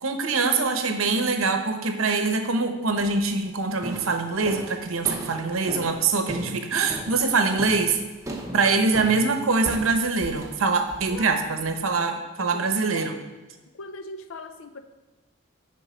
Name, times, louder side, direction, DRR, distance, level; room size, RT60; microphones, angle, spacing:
voice 1, 0.0-8.0 8.5-13.2, right 4 dB, 85° right, 6 dB, 0.9 m, -24 dB
sound 1, 3.0-3.3 3.8-11.8, right 1 dB, 15° right, 0.7 m, -37 dB
voice 2, 13.7-14.8, left 3 dB, 75° left, 9 dB, 0.6 m, -39 dB
10.0 x 3.8 x 5.0 m, 1.2 s
head